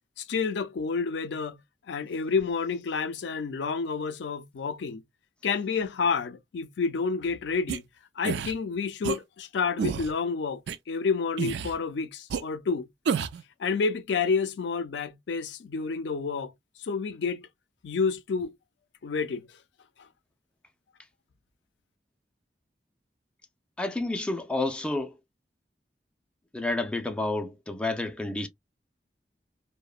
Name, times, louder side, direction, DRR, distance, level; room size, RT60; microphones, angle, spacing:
voice 1, 0.3-1.6 1.9-5.0 5.4-7.8 8.2-10.6 10.9-12.9 13.6-16.5 16.8-17.4 17.8-18.5 19.0-19.4, left 5 dB, 85° left, 0.4 m, -29 dB
sound 1, 7.7-7.8 8.2-8.5 9.0-9.2 9.8-10.1 10.7-10.8 11.4-11.8 12.3-12.4 13.1-13.4, right 6 dB, 75° right, 0.3 m, -29 dB
voice 2, 23.8-25.1 26.5-28.5, left 2 dB, 5° left, 0.3 m, -30 dB
2.8 x 2.0 x 2.3 m
head